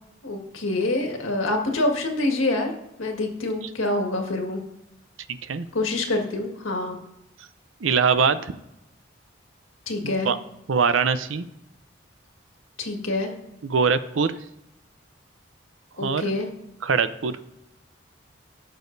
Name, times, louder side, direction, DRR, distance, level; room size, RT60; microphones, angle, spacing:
voice 1, 0.2-2.7 3.0-4.6 5.7-7.0 9.9-10.3 12.8-13.3 16.0-16.5, left 2 dB, 90° left, 2 dB, 1.8 m, -26 dB
voice 2, 5.3-5.7 7.8-8.5 10.0-10.4 10.7-11.4 13.6-14.3 16.0-16.3 16.8-17.4, right 5 dB, 80° right, 12 dB, 0.6 m, -22 dB
16.5 x 6.3 x 2.7 m, 0.88 s
head